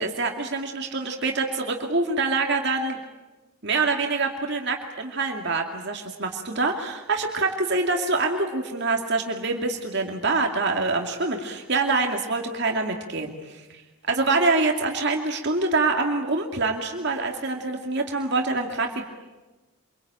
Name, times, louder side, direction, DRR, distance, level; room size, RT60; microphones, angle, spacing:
voice 1, 0.0-3.0 3.6-13.6 14.1-19.0, right 3 dB, 50° right, 2 dB, 2.5 m, -25 dB
27.5 x 23.5 x 9.0 m, 1.2 s
head